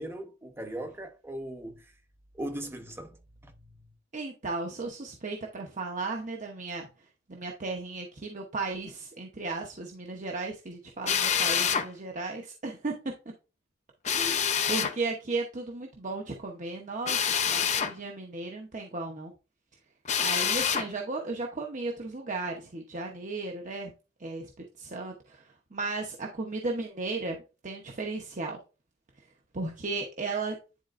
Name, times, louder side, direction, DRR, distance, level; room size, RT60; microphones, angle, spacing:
voice 1, 0.0-1.8 2.3-3.2 3.4-3.7, right 1 dB, 15° right, 1.0 m, -38 dB
voice 2, 4.1-6.9 7.3-12.9 14.1-19.3 20.2-23.9 24.2-24.5 24.8-28.6 29.5-30.6, right 3 dB, 45° right, 0.9 m, -35 dB
Drill, 11.1-11.9 14.0-15.0 17.1-17.9 20.1-20.9, left 7 dB, 40° left, 0.7 m, -26 dB
10.0 x 4.2 x 2.5 m
head